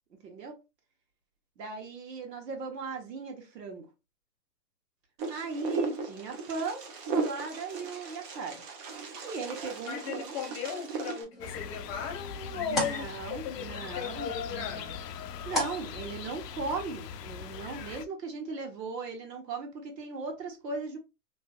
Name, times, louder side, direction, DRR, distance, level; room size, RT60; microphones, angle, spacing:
voice 1, 0.2-0.6 1.6-3.9 5.3-8.6 9.2-10.4 12.5-14.9 15.4-21.0, right 4 dB, 75° right, 1.4 m, -38 dB
Wind, 5.2-11.2, right 4 dB, 30° right, 0.7 m, -36 dB
voice 2, 9.9-15.0, left 7 dB, 30° left, 0.9 m, -37 dB
sound 1, 11.3-16.7, equal, ahead, 0.4 m, -39 dB
sound 2, 11.4-18.1, left 8 dB, 75° left, 0.6 m, -40 dB
3.2 x 2.7 x 2.4 m
hypercardioid pair, 135°, 49 cm